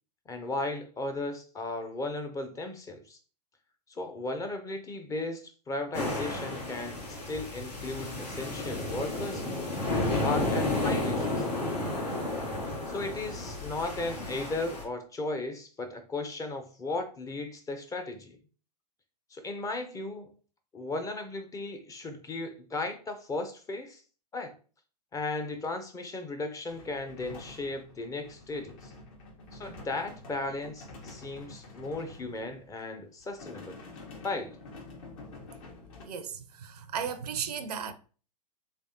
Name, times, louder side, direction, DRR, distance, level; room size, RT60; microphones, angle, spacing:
voice 1, 0.3-3.2 3.9-9.4 10.0-11.5 12.9-18.4 19.3-20.3 20.7-24.0 24.3-24.5 25.1-28.9 29.5-33.8 34.2-34.5, left 2 dB, 15° left, 0.6 m, -36 dB
sound 1, 5.9-14.8, left 2 dB, 85° left, 1.5 m, -32 dB
sound 2, 26.7-32.8 33.2-36.0, left 3 dB, 55° left, 1.3 m, -48 dB
voice 2, 36.0-37.9, right 7 dB, 70° right, 0.6 m, -35 dB
3.3 x 3.3 x 2.7 m
hypercardioid pair, 105°, 21 cm